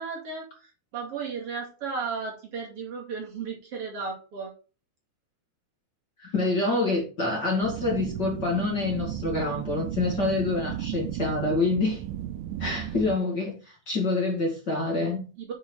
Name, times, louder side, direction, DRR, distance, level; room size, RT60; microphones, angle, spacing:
voice 1, 0.0-4.5 15.4-15.5, right 5 dB, 45° right, 3.0 m, -35 dB
voice 2, 6.2-12.0 12.6-15.3, left 3 dB, 35° left, 2.4 m, -27 dB
sound 1, 7.6-13.2, right 11 dB, 80° right, 2.1 m, -34 dB
8.6 x 5.0 x 4.8 m
omnidirectional pair, 3.8 m